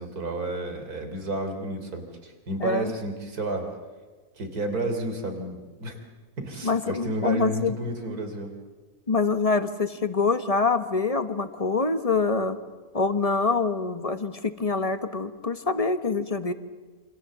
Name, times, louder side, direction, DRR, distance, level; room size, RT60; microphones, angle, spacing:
voice 1, 0.0-3.7 4.4-6.0 6.4-8.5, right 1 dB, 75° right, 5 dB, 3.7 m, -31 dB
voice 2, 2.6-2.9 6.6-7.7 9.1-12.6 12.9-16.5, left 4 dB, 25° left, 10 dB, 1.1 m, -25 dB
28.0 x 26.0 x 7.6 m, 1.3 s
omnidirectional pair, 1.6 m